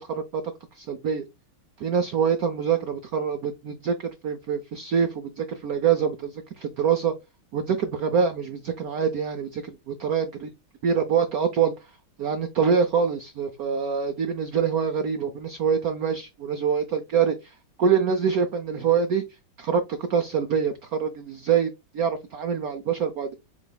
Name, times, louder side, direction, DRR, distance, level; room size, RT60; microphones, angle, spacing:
voice 1, 0.1-0.4 0.8-1.2 1.8-7.1 7.5-10.5 10.8-11.7 12.2-19.2 19.6-23.3, right 6 dB, 90° right, 0.7 m, -25 dB
7.2 x 3.1 x 2.3 m
omnidirectional pair, 2.4 m